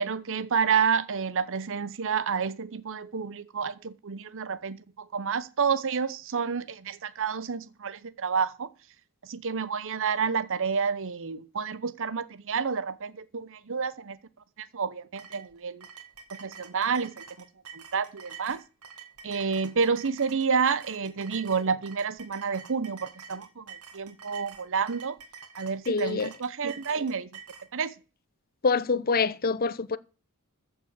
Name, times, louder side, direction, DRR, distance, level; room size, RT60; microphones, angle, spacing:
voice 1, 0.0-4.8 5.1-8.7 9.3-14.2 14.6-15.9 16.4-17.2 17.7-18.6 19.2-25.2 25.6-27.3 27.7-27.9, right 6 dB, 60° right, 0.8 m, -29 dB
sound 1, 15.2-27.7, right 6 dB, 85° right, 2.4 m, -47 dB
voice 2, 25.9-26.3 28.6-30.0, left 4 dB, 45° left, 0.8 m, -25 dB
14.5 x 5.8 x 8.1 m
head